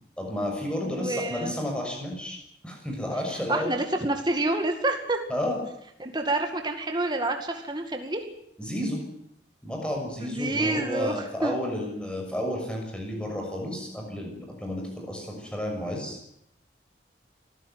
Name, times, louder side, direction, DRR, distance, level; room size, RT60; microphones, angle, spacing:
voice 1, 0.2-2.4 2.6-3.8 5.3-5.6 8.6-9.0 9.6-16.2, left 1 dB, 5° left, 1 dB, 6.6 m, -31 dB
voice 2, 0.8-1.6 3.5-5.2 6.0-8.3 10.2-11.6, right 2 dB, 25° right, 5 dB, 2.1 m, -28 dB
25.0 x 15.0 x 9.4 m, 0.78 s
head